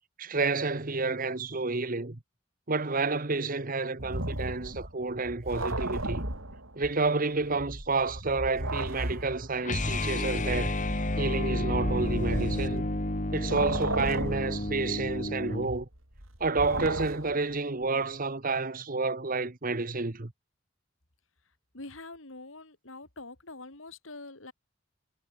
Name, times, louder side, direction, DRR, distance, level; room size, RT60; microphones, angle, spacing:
voice 1, 0.2-2.2 2.7-6.3 6.7-10.7 11.2-12.9 13.3-15.9 16.4-20.3, right 3 dB, 45° right, 1.3 m, -30 dB
sound 1, 4.0-7.1 7.4-13.1 13.4-17.5, right 1 dB, 85° right, 7.5 m, -36 dB
sound 2, 9.6-15.7, left 1 dB, 40° left, 2.5 m, -31 dB
voice 2, 21.7-24.5, left 2 dB, 80° left, 4.2 m, -45 dB
head